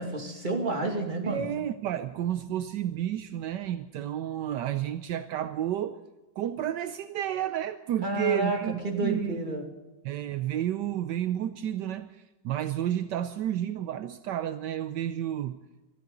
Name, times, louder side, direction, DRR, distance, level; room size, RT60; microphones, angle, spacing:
voice 1, 0.0-1.5 8.0-9.7, right 2 dB, 25° right, 1 dB, 2.6 m, -30 dB
voice 2, 1.2-6.0 6.4-9.6 10.0-15.6, right 11 dB, 75° right, 10 dB, 1.3 m, -31 dB
22.5 x 13.5 x 3.9 m, 1.1 s
omnidirectional pair, 1.9 m